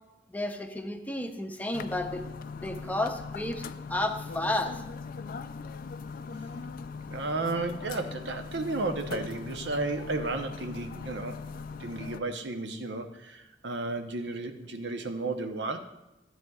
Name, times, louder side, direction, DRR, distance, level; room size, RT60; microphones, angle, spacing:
voice 1, 0.3-2.2 2.6-4.8, left 1 dB, 10° left, 5 dB, 0.6 m, -32 dB
sound 1, 1.7-12.2, left 4 dB, 50° left, 0.4 m, -40 dB
voice 2, 7.1-11.4 11.8-15.8, right 2 dB, 75° right, 6 dB, 0.8 m, -33 dB
13.5 x 7.8 x 2.4 m, 0.97 s
head